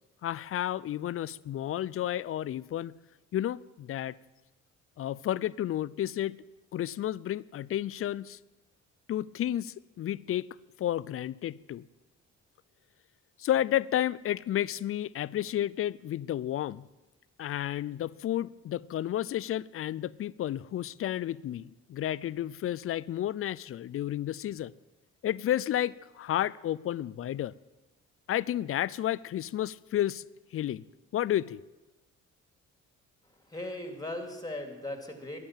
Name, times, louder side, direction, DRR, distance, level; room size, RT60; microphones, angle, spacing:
voice 1, 0.2-2.9 3.3-4.2 5.0-6.4 6.7-8.4 9.1-10.5 10.8-11.8 13.4-16.9 17.4-24.7 25.2-27.5 28.3-30.2 30.5-30.8 31.1-31.6, left 12 dB, 50° left, 0.4 m, -31 dB
voice 2, 33.5-35.4, left 1 dB, 10° left, 2.5 m, -38 dB
12.0 x 11.0 x 7.4 m
cardioid pair, 90°, 30 cm